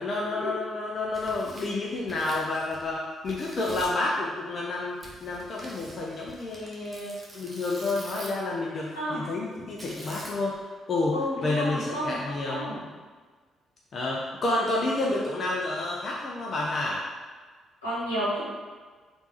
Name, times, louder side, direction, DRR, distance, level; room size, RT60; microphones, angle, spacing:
voice 1, 0.0-10.6 10.9-12.9 13.9-17.0, left 2 dB, 50° left, -3 dB, 0.5 m, -30 dB
Tearing, 1.0-3.0 3.2-4.0 5.0-8.5 9.8-10.6, right 1 dB, 25° right, 0.8 m, -45 dB
voice 2, 11.1-12.8 17.8-18.4, equal, 85° left, -9 dB, 1.0 m, -31 dB
3.5 x 2.5 x 2.9 m, 1.4 s
hypercardioid pair, 45°, 0 cm